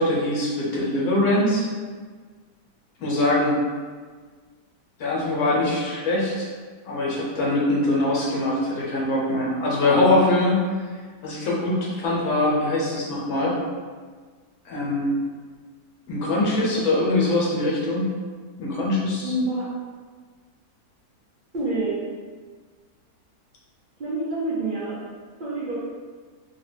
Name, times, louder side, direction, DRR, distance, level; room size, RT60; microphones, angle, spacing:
voice 1, 0.0-1.6 3.0-3.6 5.0-6.5 6.8-10.6 11.2-13.6 14.6-15.2 16.1-18.1 18.6-19.3, left 1 dB, 65° left, -5 dB, 1.2 m, -22 dB
voice 2, 19.2-19.7 21.5-22.0 24.0-25.0 25.4-25.7, right 2 dB, 75° right, -9 dB, 0.4 m, -27 dB
2.9 x 2.4 x 3.2 m, 1.5 s
omnidirectional pair, 1.8 m